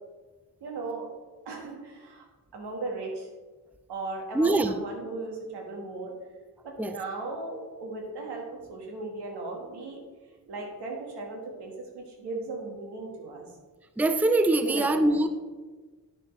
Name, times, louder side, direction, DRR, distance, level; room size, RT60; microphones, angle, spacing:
voice 1, 0.6-1.1 1.4-2.2 2.5-3.3 3.9-6.1 6.6-10.0 10.5-13.5 14.6-15.3, right 3 dB, 90° right, 1 dB, 1.6 m, -37 dB
voice 2, 4.3-4.7 6.8-7.0 14.0-15.3, right 2 dB, 5° right, 10 dB, 0.4 m, -23 dB
9.6 x 6.3 x 3.2 m, 1.3 s
cardioid pair, 60°, 39 cm